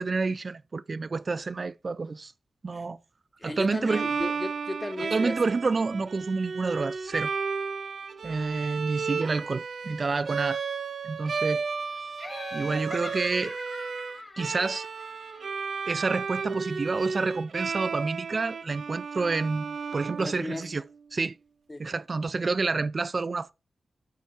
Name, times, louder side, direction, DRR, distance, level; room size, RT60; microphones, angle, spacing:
voice 1, 0.0-2.3 2.6-3.0 3.4-4.0 5.1-7.3 8.2-10.6 11.0-11.6 12.5-13.6 14.4-14.9 15.9-20.8 21.1-21.4 21.8-23.5, right 4 dB, 50° right, 0.4 m, -29 dB
voice 2, 3.4-5.4 20.2-20.7 21.7-21.9, left 2 dB, 25° left, 1.0 m, -35 dB
Bowed string instrument, 3.9-20.8, right 5 dB, 75° right, 0.9 m, -33 dB
Laughter, 12.2-15.8, left 2 dB, 45° left, 2.4 m, -42 dB
11.5 x 4.6 x 4.2 m
cardioid pair, 75°, 0 cm